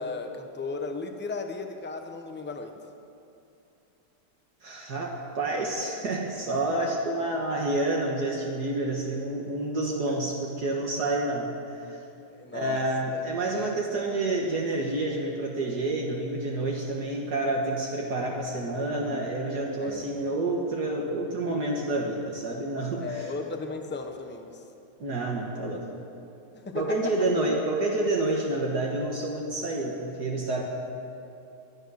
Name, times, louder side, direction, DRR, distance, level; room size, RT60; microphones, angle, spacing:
voice 1, 0.0-2.8 10.1-10.2 12.3-12.8 13.1-13.8 19.8-20.1 23.0-24.6 26.5-27.1, left 4 dB, 10° left, 5 dB, 0.5 m, -35 dB
voice 2, 4.6-12.0 12.5-23.3 25.0-25.9 26.8-30.6, right 2 dB, 60° right, -1 dB, 1.9 m, -29 dB
22.0 x 9.7 x 6.3 m, 2.7 s
omnidirectional pair, 2.0 m